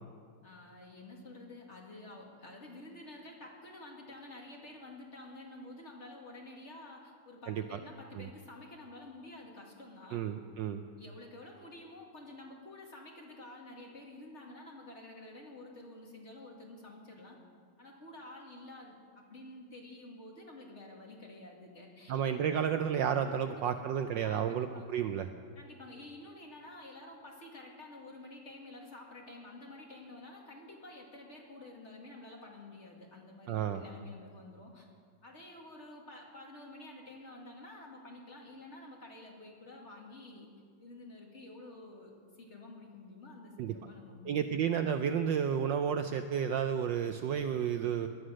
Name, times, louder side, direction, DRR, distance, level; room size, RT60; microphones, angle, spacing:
voice 1, 0.4-10.2 11.0-17.4 17.8-22.2 23.4-23.6 24.2-24.9 25.6-34.9 35.2-40.5 40.8-42.1 42.4-44.6, left 2 dB, 30° left, 0 dB, 2.3 m, -50 dB
voice 2, 7.5-7.8 8.2-8.3 10.1-10.8 22.1-25.3 33.5-33.8 43.6-43.7 44.3-48.1, right 8 dB, 70° right, 8 dB, 1.1 m, -32 dB
19.0 x 11.5 x 6.3 m, 2.1 s
omnidirectional pair, 2.4 m